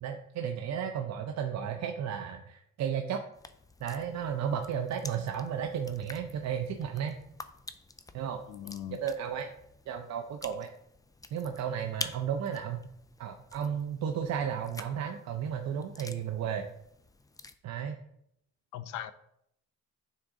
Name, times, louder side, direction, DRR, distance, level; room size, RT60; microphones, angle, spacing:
voice 1, 0.0-3.2 3.8-7.2 8.1-8.4 8.9-9.5 9.9-10.7 11.3-12.8 13.2-16.7 17.6-18.0, right 8 dB, 65° right, 5 dB, 0.6 m, -33 dB
sound 1, 3.3-17.6, left 3 dB, 10° left, 0.4 m, -48 dB
voice 2, 8.5-9.0 18.7-19.1, left 11 dB, 85° left, 12 dB, 0.5 m, -39 dB
9.4 x 3.7 x 3.8 m, 0.75 s
cardioid pair, 90°, 30 cm